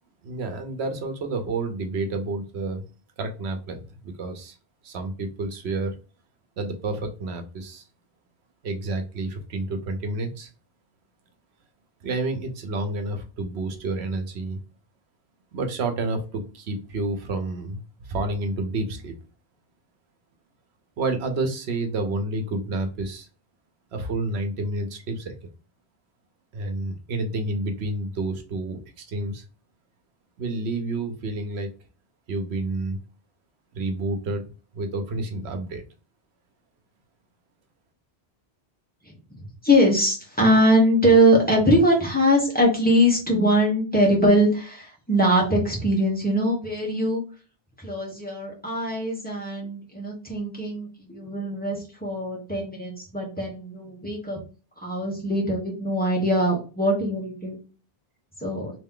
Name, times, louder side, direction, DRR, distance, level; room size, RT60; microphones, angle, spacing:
voice 1, 0.2-2.8 3.2-4.6 4.8-5.9 6.6-7.8 8.6-10.5 12.0-14.6 15.5-19.1 21.0-23.3 23.9-25.3 26.5-29.4 30.4-31.7 32.3-33.0 33.8-34.4 34.7-35.8, right 2 dB, 85° right, 6 dB, 1.0 m, -29 dB
voice 2, 39.6-47.2 47.8-54.4 54.8-57.6 58.4-58.7, equal, 10° left, -2 dB, 1.2 m, -22 dB
3.3 x 2.8 x 3.6 m, 0.34 s
omnidirectional pair, 1.1 m